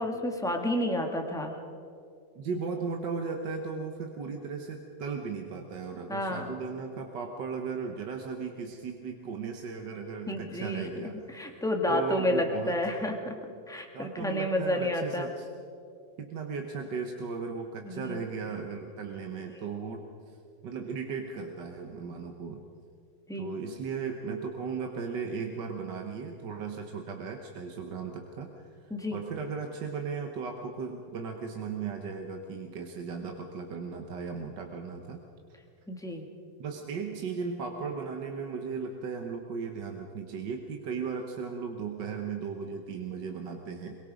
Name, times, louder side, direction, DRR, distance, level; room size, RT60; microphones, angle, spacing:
voice 1, 0.0-1.5 6.1-6.5 10.3-10.9 11.3-13.4 13.7-15.3 17.8-18.2 23.3-23.5 28.9-29.2 35.9-36.2, left 1 dB, ahead, 3 dB, 1.6 m, -30 dB
voice 2, 2.4-11.6 11.9-12.8 13.9-15.5 16.2-20.0 20.6-22.6 23.4-28.5 28.8-35.2 36.6-44.0, right 5 dB, 70° right, 3 dB, 1.8 m, -36 dB
23.0 x 22.0 x 5.2 m, 2.4 s
omnidirectional pair, 2.0 m